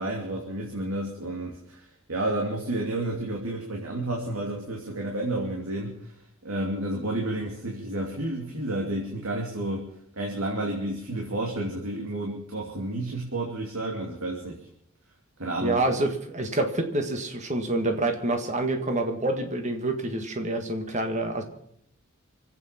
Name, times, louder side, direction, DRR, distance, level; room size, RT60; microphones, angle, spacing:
voice 1, 0.0-9.9 10.2-14.7 15.4-15.8, right 1 dB, 90° right, -1 dB, 2.8 m, -31 dB
voice 2, 15.6-21.4, right 2 dB, 35° right, 5 dB, 1.7 m, -27 dB
25.5 x 9.0 x 5.8 m, 0.71 s
head